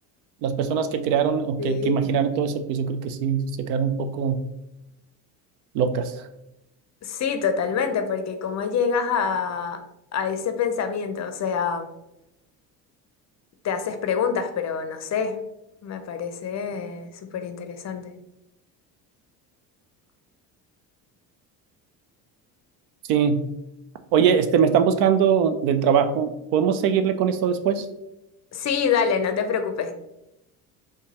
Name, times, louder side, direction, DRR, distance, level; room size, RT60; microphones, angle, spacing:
voice 1, 0.4-4.4 5.7-6.2 23.1-23.4 24.1-27.9, right 7 dB, 75° right, 9 dB, 0.6 m, -22 dB
voice 2, 1.6-2.1 7.0-9.8 10.1-11.9 13.6-15.4 15.8-18.1 28.5-29.9, left 6 dB, 35° left, 8 dB, 0.5 m, -26 dB
4.4 x 2.3 x 2.9 m, 0.87 s
hypercardioid pair, 60°, 48 cm